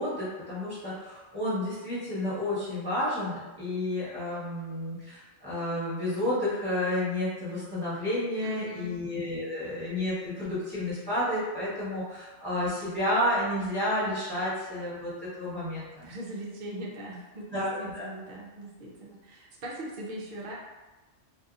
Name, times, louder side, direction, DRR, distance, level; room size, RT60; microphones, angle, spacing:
voice 1, 0.0-16.1 17.5-18.1, left 1 dB, 20° right, -12 dB, 1.2 m, -31 dB
voice 2, 8.4-9.0 16.0-20.5, right 1 dB, 55° right, -3 dB, 0.5 m, -40 dB
2.6 x 2.6 x 2.4 m, 1.1 s
omnidirectional pair, 1.3 m